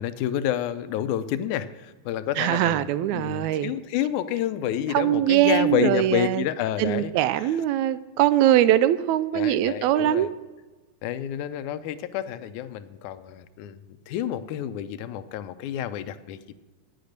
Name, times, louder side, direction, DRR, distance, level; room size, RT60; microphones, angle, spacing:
voice 1, 0.0-2.9 3.1-7.1 7.4-7.5 9.3-10.3 11.0-16.6, left 11 dB, 85° left, 12 dB, 2.1 m, -29 dB
voice 2, 2.4-3.7 4.9-6.4 6.8-10.3, right 12 dB, 80° right, 15 dB, 1.8 m, -22 dB
12.0 x 9.7 x 6.5 m, 1.2 s
omnidirectional pair, 3.4 m